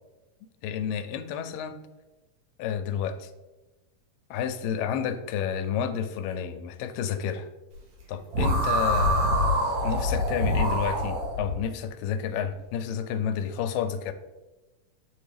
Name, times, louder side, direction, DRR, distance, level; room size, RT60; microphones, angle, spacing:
voice 1, 0.6-1.8 2.6-3.3 4.3-7.5 8.1-14.1, left 8 dB, 90° left, 9 dB, 2.2 m, -30 dB
sound 1, 8.3-11.5, equal, 75° right, 3.0 m, -25 dB
9.3 x 4.4 x 3.3 m, 1.1 s
omnidirectional pair, 3.8 m